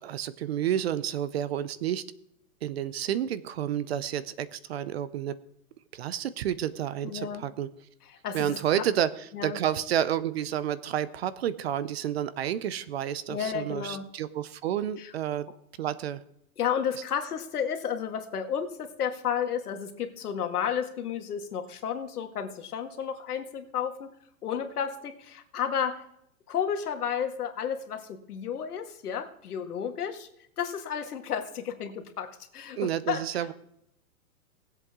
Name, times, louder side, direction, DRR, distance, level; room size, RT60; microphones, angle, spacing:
voice 1, 0.0-2.0 2.6-5.4 5.9-7.7 8.3-15.5 15.8-16.2 32.8-33.5, right 10 dB, 45° right, 16 dB, 0.7 m, -30 dB
voice 2, 7.0-7.4 8.1-8.9 9.3-9.6 13.3-14.0 15.0-15.1 16.6-24.1 24.4-26.0 26.5-30.3 30.6-32.3 32.5-33.5, left 8 dB, 80° left, 6 dB, 2.0 m, -32 dB
19.5 x 8.0 x 3.7 m, 0.77 s
hypercardioid pair, 160°, 45 cm